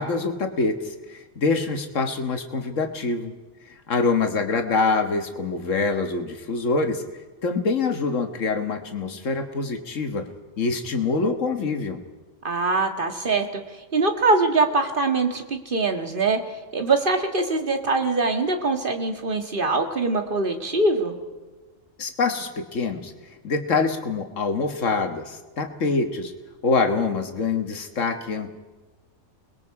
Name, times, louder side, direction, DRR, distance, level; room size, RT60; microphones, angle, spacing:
voice 1, 0.0-3.3 3.7-7.0 7.4-10.3 10.6-12.0 22.0-23.1 23.4-26.3 26.6-28.5, left 4 dB, 80° left, 6 dB, 1.8 m, -25 dB
voice 2, 12.4-21.1, right 3 dB, 45° right, 5 dB, 1.9 m, -23 dB
29.5 x 20.5 x 4.8 m, 1.2 s
omnidirectional pair, 1.3 m